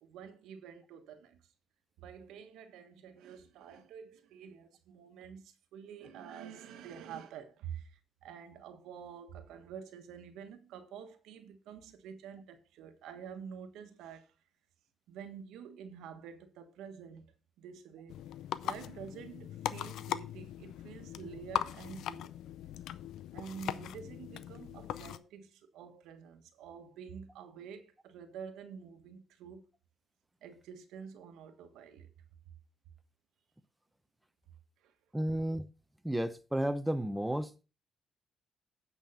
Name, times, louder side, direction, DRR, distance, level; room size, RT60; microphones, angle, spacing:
voice 1, 0.0-1.4 2.0-14.3 15.1-18.2 18.6-22.4 23.3-29.6 30.4-32.1 34.8-34.9, right 7 dB, 90° right, 1.3 m, -48 dB
sound 1, 18.1-25.2, left 11 dB, 85° left, 0.5 m, -40 dB
voice 2, 35.1-35.7 36.0-37.6, right 1 dB, 5° right, 0.8 m, -32 dB
8.9 x 5.5 x 5.5 m
cardioid pair, 90°, 0 cm